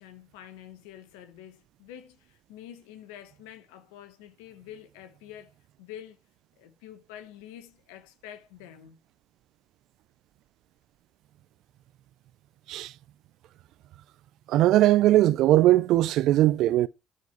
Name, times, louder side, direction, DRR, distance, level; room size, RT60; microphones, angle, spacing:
voice 1, 0.0-5.5 5.8-6.2 6.6-9.0, left 10 dB, 85° left, 1.3 m, -47 dB
voice 2, 14.5-16.9, right 14 dB, 75° right, 0.4 m, -20 dB
13.5 x 4.8 x 4.5 m
hypercardioid pair, 55°, 0 cm